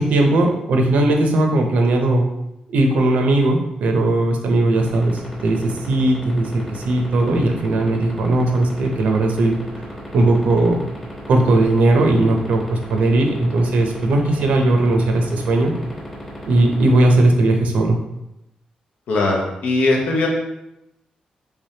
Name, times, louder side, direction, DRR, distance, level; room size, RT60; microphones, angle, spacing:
voice 1, 0.0-2.2 2.7-9.5 10.1-10.8 11.3-15.7 16.5-18.0, right 2 dB, 75° right, 3 dB, 0.6 m, -18 dB
sound 1, 4.8-17.1, left 2 dB, 10° left, 1.0 m, -33 dB
voice 2, 19.1-20.3, left 2 dB, 85° left, -1 dB, 0.6 m, -19 dB
3.4 x 3.4 x 2.7 m, 0.87 s
wide cardioid pair, 180°, 3 cm